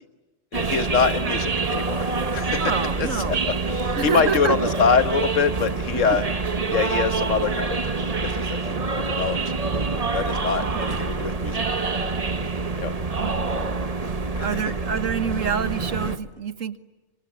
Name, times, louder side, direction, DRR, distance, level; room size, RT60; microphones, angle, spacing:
voice 1, 0.5-2.6 3.0-6.2 6.7-7.8 8.2-8.8 9.1-9.4 10.1-11.6 12.8-12.9 14.3-14.5, left 5 dB, 75° left, 10 dB, 1.7 m, -24 dB
sound 1, 0.5-16.2, right 4 dB, 30° right, 1.2 m, -26 dB
voice 2, 2.6-3.4 3.9-4.6 10.6-10.9 13.1-13.4 14.4-16.8, right 6 dB, 85° right, 11 dB, 1.7 m, -27 dB
25.5 x 24.5 x 8.5 m, 1.2 s
omnidirectional pair, 1.3 m